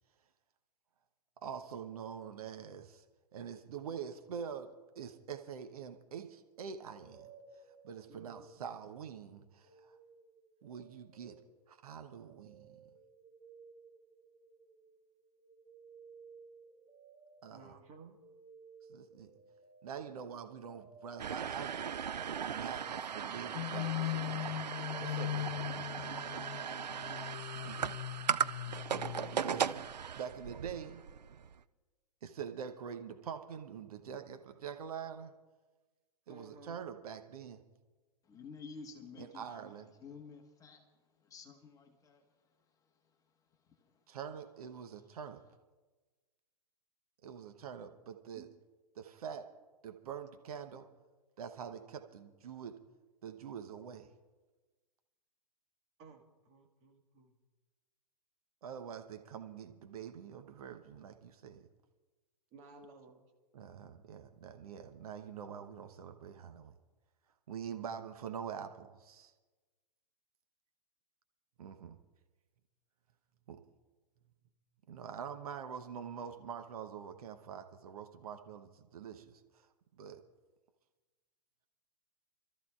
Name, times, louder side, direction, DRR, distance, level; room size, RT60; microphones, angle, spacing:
voice 1, 1.4-3.0 3.3-7.3 7.8-10.0 10.6-11.4 11.7-12.8 17.4-17.7 18.9-19.3 19.8-21.7 22.4-24.6 25.0-26.1 27.6-28.0 29.3-29.8 30.1-31.0 32.2-35.3 36.3-37.6 39.2-39.9 44.1-45.4 47.2-48.5 48.9-49.5 49.8-50.9 51.4-52.8 53.2-54.1 58.6-61.7 63.5-66.7 67.5-69.3 71.6-72.0 73.5-73.6 74.9-79.4 80.0-80.2, right 7 dB, 60° right, 7 dB, 1.0 m, -45 dB
sound 1, 6.8-9.1 9.4-25.1, right 4 dB, 10° right, 5.7 m, -59 dB
voice 2, 8.1-8.5 17.5-18.2 36.3-36.8 48.4-48.5 56.0-57.4 62.5-63.2, right 3 dB, 30° right, 2 dB, 1.8 m, -56 dB
sound 2, 21.2-31.6, right 7 dB, 85° right, 0.5 m, -38 dB
sound 3, 23.5-29.8, left 16 dB, 40° left, 0.4 m, -40 dB
voice 3, 38.2-44.1 44.8-45.2, left 5 dB, 15° left, 3 dB, 1.4 m, -54 dB
29.5 x 13.5 x 2.4 m, 1.3 s
figure-of-eight pair, 115°, 21 cm